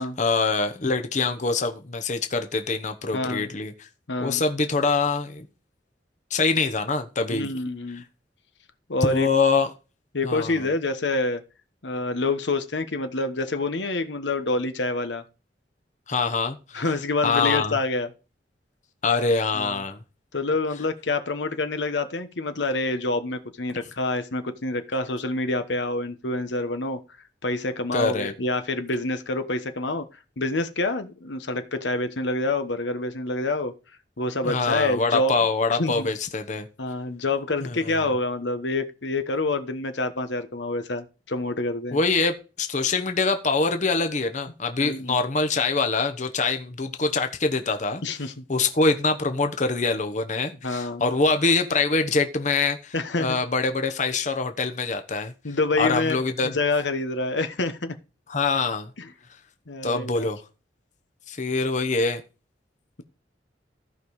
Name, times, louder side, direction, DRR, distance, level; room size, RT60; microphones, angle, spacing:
voice 1, 0.0-3.9 4.2-5.5 6.3-7.5 9.0-9.7 10.2-10.7 16.1-16.8 17.2-17.8 19.0-20.0 27.9-28.3 34.4-36.7 37.6-38.0 41.9-48.0 48.5-55.3 55.8-56.5 58.3-58.9 59.8-60.4 61.3-62.2, left 4 dB, 45° left, 1.0 m, -24 dB
voice 2, 3.1-3.5 4.1-4.4 7.3-8.0 8.9-9.3 10.1-11.4 11.8-15.2 16.7-18.1 19.5-19.8 20.3-27.0 27.4-30.1 30.4-33.7 34.2-35.3 35.8-36.1 36.8-42.0 44.8-45.2 48.0-48.4 50.6-51.1 52.9-53.4 55.4-56.2 56.4-57.9 59.0-59.1 59.7-60.3, left 2 dB, 85° left, 1.2 m, -27 dB
14.5 x 5.4 x 4.8 m
head